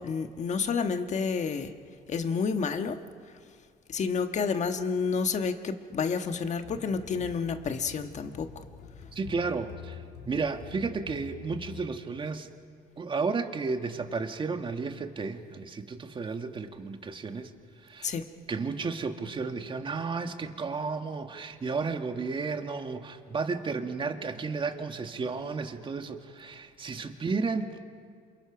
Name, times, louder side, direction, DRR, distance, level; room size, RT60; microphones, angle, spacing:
voice 1, 0.0-1.7 2.1-3.0 3.9-8.6 18.0-18.2, left 5 dB, 45° left, 7 dB, 1.5 m, -30 dB
sound 1, 6.6-12.3, left 7 dB, 80° left, 4.0 m, -46 dB
voice 2, 9.1-10.0 10.3-12.5 13.0-17.5 17.8-18.1 18.5-27.8, right 4 dB, 30° right, 6 dB, 1.8 m, -33 dB
28.5 x 27.5 x 6.0 m, 2.1 s
cardioid pair, 110°, 17 cm